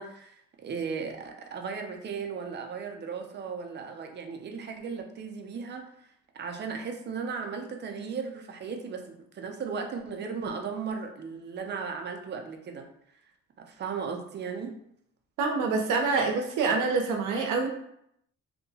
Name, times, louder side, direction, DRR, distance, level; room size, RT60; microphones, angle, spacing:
voice 1, 0.0-5.9 6.3-12.9 13.6-14.7, right 5 dB, 35° right, 4 dB, 0.5 m, -36 dB
voice 2, 15.4-17.7, right 4 dB, 85° right, 3 dB, 0.6 m, -26 dB
2.7 x 2.2 x 2.7 m, 0.74 s
cardioid pair, 90°, 30 cm